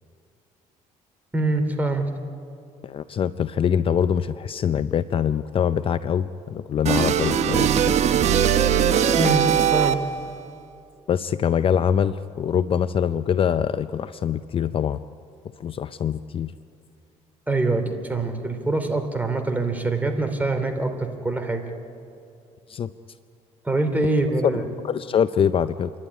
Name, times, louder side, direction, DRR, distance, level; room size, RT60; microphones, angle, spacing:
voice 1, 1.3-2.1 9.1-9.4 9.7-10.0 17.5-21.6 23.6-24.6, right 2 dB, 10° right, 5 dB, 2.8 m, -24 dB
voice 2, 2.8-8.0 11.1-15.0 15.6-16.5 22.7-22.9 24.5-25.9, left 8 dB, 40° left, 13 dB, 0.5 m, -24 dB
sound 1, 6.9-10.3, right 8 dB, 55° right, 1.2 m, -20 dB
27.5 x 12.0 x 9.9 m, 2.5 s
cardioid pair, 95°, 14 cm